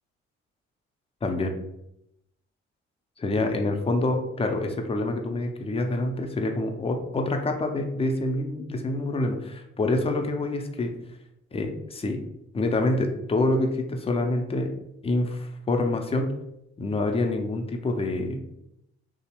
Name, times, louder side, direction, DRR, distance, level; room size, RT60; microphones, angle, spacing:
voice 1, 1.2-1.6 3.2-11.0 11.5-12.2 12.5-14.7 15.0-16.3 16.8-18.4, left 2 dB, 20° left, 4 dB, 0.5 m, -26 dB
2.8 x 2.0 x 2.9 m, 0.82 s
hypercardioid pair, 45°, 31 cm